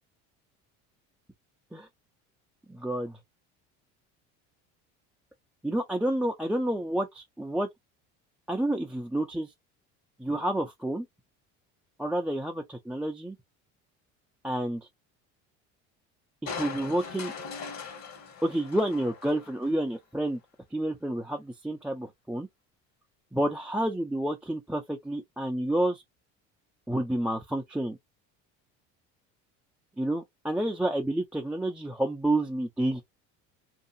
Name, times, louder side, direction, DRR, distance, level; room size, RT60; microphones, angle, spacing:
voice 1, 2.7-3.2 5.6-7.7 8.5-9.5 10.2-11.1 12.0-13.4 14.4-14.8 16.5-17.3 18.4-20.4 20.7-22.5 23.3-26.0 26.9-28.0 30.0-33.0, right 1 dB, 5° right, 0.3 m, -29 dB
Crushing, 16.5-19.8 20.3-20.4, left 5 dB, 55° left, 1.4 m, -40 dB
2.7 x 2.3 x 2.6 m
supercardioid pair, 95°, 35 cm